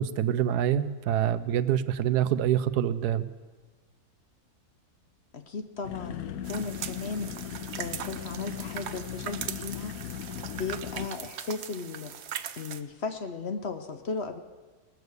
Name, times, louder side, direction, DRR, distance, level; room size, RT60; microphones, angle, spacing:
voice 1, 0.0-3.3, right 10 dB, 90° right, 13 dB, 1.2 m, -26 dB
voice 2, 5.3-10.0 10.6-12.3 12.6-14.4, left 4 dB, 55° left, 9 dB, 0.8 m, -36 dB
sound 1, 5.8-11.1, left 10 dB, 75° left, 1.1 m, -38 dB
sound 2, 6.4-12.8, right 9 dB, 60° right, 0.7 m, -40 dB
19.0 x 6.9 x 7.9 m, 1.3 s
omnidirectional pair, 1.6 m